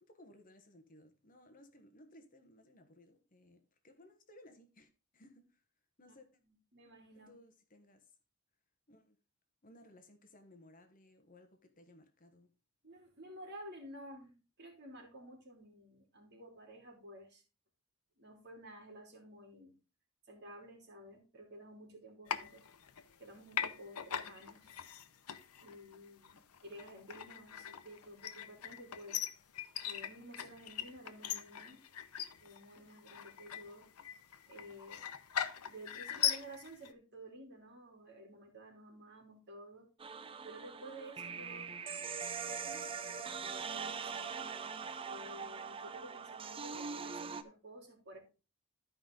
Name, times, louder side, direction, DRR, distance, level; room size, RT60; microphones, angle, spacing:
voice 1, 0.0-5.6 6.0-6.4 7.1-8.1 8.9-9.2 9.6-12.5, left 1 dB, 40° left, 1.1 m, -61 dB
voice 2, 6.5-7.3 12.8-17.4 18.2-19.7 20.3-22.7 23.2-24.7 25.6-29.2 29.8-31.8 32.4-33.9 34.5-35.0 35.6-39.9 40.4-41.7 42.4-44.4 45.0-48.2, right 1 dB, 50° right, 3.3 m, -52 dB
sound 1, 22.3-23.2 23.5-36.9, left 9 dB, 85° left, 0.8 m, -41 dB
sound 2, 40.0-47.4, right 6 dB, 25° right, 0.5 m, -42 dB
12.5 x 5.2 x 3.8 m
head